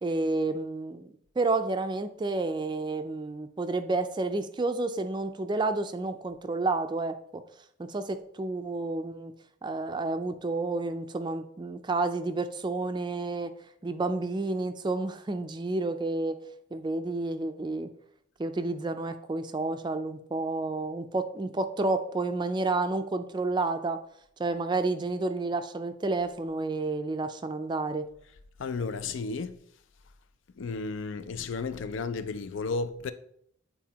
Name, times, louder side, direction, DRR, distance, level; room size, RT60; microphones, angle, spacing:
voice 1, 0.0-7.4 7.8-9.3 9.6-13.5 13.8-16.4 16.7-17.9 18.4-24.0 24.4-28.1, right 3 dB, 20° right, 0.4 m, -30 dB
voice 2, 28.6-29.6 30.6-33.1, left 4 dB, 70° left, 0.5 m, -33 dB
9.2 x 4.1 x 2.9 m
head